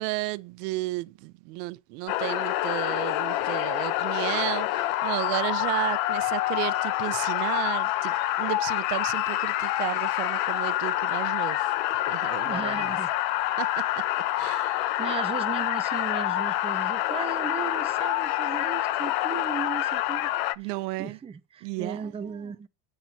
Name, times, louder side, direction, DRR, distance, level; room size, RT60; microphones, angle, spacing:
voice 1, 0.0-11.6 12.1-13.0 13.6-13.8 14.4-14.9 20.6-21.2 21.6-22.1, right 21 dB, 90° right, 0.9 m, -33 dB
sound 1, 2.1-20.6, left 15 dB, 75° left, 0.8 m, -27 dB
voice 2, 12.4-13.1 15.0-20.3 20.6-22.7, right 6 dB, 15° right, 0.6 m, -36 dB
9.5 x 7.8 x 4.3 m
cardioid pair, 150°, 46 cm